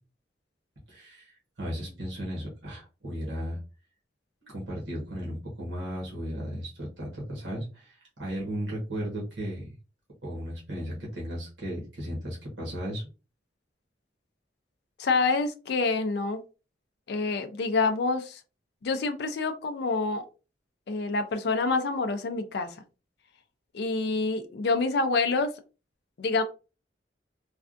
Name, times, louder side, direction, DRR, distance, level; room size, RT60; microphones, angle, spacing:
voice 1, 0.9-3.6 4.4-9.7 10.2-13.1, equal, 85° right, -4 dB, 1.3 m, -35 dB
voice 2, 15.0-16.4 17.1-18.4 18.8-20.2 20.9-22.7 23.7-25.5 26.2-26.4, left 3 dB, 65° left, 7 dB, 0.4 m, -27 dB
3.3 x 2.3 x 2.5 m, 0.32 s
head